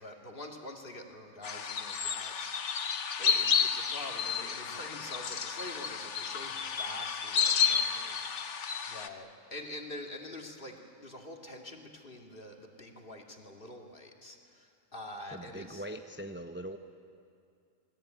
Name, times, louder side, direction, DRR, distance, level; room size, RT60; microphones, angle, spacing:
voice 1, 0.0-15.8, left 1 dB, 45° left, 2 dB, 2.5 m, -46 dB
sound 1, 1.4-9.1, left 7 dB, 65° left, 1.3 m, -31 dB
voice 2, 15.3-16.8, right 1 dB, 10° right, 6 dB, 0.7 m, -41 dB
27.5 x 19.5 x 9.1 m, 2.4 s
omnidirectional pair, 1.3 m